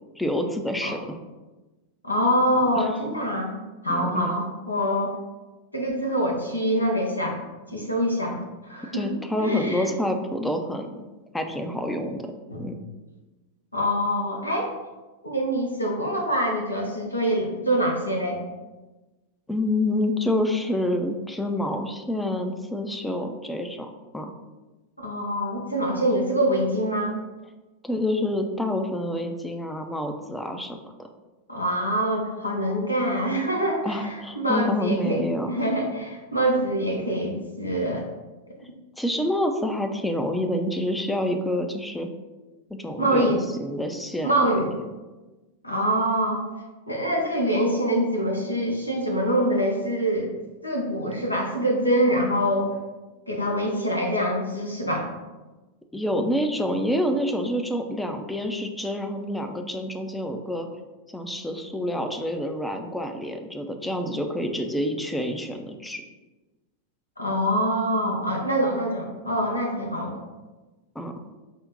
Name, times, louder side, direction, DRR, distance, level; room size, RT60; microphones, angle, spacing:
voice 1, 0.2-1.2 2.8-2.9 3.9-4.4 8.9-11.0 11.3-12.3 12.6-12.8 19.5-23.9 24.1-24.3 27.8-31.1 33.8-35.6 39.0-42.1 42.7-44.5 55.9-60.7 61.1-66.0 71.0-71.1, left 1 dB, 5° left, 5 dB, 0.4 m, -27 dB
voice 2, 2.0-3.5 3.8-5.1 5.7-7.4 7.7-8.4 8.6-9.0 9.4-9.9 12.5-12.6 13.7-14.7 15.2-18.4 25.0-27.1 31.5-38.1 43.0-43.4 44.2-44.7 45.6-46.4 46.9-50.3 50.6-52.7 53.3-55.1 67.2-70.2, equal, 85° left, 0 dB, 0.8 m, -25 dB
5.2 x 2.1 x 3.9 m, 1.2 s
figure-of-eight pair, 90°, 0 cm